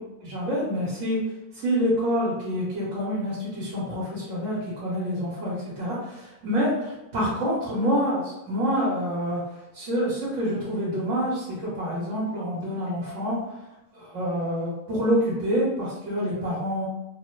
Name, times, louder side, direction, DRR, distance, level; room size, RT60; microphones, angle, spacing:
voice 1, 0.2-1.2 1.5-9.4 9.7-13.4 13.9-16.9, equal, 60° right, -9 dB, 1.4 m, -27 dB
3.5 x 2.0 x 3.1 m, 0.96 s
omnidirectional pair, 1.5 m